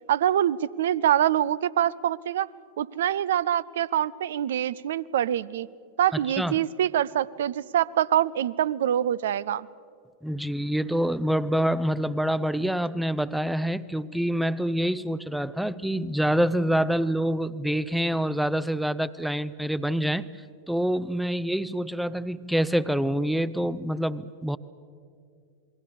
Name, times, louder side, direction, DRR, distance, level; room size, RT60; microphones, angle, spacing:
voice 1, 0.1-2.5 2.8-5.7 6.0-9.7, right 11 dB, 60° right, 20 dB, 0.5 m, -25 dB
voice 2, 10.2-20.3 20.7-24.6, equal, ahead, 17 dB, 0.6 m, -26 dB
28.0 x 21.5 x 6.7 m, 2.4 s
figure-of-eight pair, 90°, 0 cm